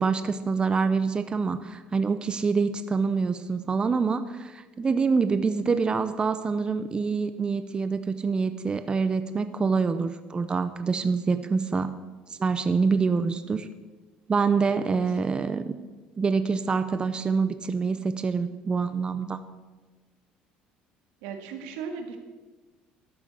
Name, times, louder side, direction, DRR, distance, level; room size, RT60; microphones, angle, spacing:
voice 1, 0.0-11.9 12.3-13.7 14.3-15.7 16.2-19.4, right 5 dB, 25° right, 11 dB, 0.7 m, -26 dB
voice 2, 21.2-22.2, right 6 dB, 90° right, 4 dB, 1.9 m, -36 dB
12.5 x 7.2 x 8.1 m, 1.3 s
supercardioid pair, 95°, 3 cm